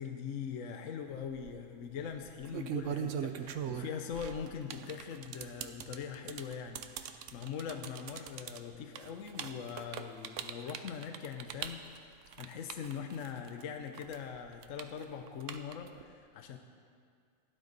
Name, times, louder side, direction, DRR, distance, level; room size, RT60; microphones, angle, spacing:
voice 1, 0.0-16.6, left 7 dB, 65° left, 5 dB, 1.1 m, -42 dB
sound 1, 1.2-1.5 2.3-13.6 13.9-16.0, right 9 dB, 65° right, 0.9 m, -40 dB
17.0 x 11.5 x 4.0 m, 2.2 s
omnidirectional pair, 1.5 m